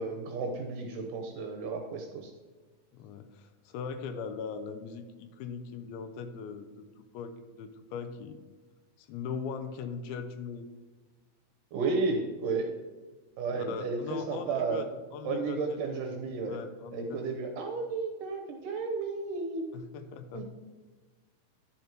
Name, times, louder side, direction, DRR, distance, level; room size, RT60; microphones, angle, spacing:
voice 1, 0.0-2.3 11.7-12.7 13.4-14.8 15.2-16.6 16.9-19.7 20.3-20.4, right 4 dB, 75° right, 3 dB, 2.0 m, -33 dB
voice 2, 2.9-6.9 7.1-8.4 9.0-10.7 13.5-16.0 16.5-17.4 19.7-20.4, left 6 dB, 80° left, 9 dB, 2.4 m, -40 dB
10.5 x 5.3 x 4.5 m, 1.3 s
omnidirectional pair, 4.5 m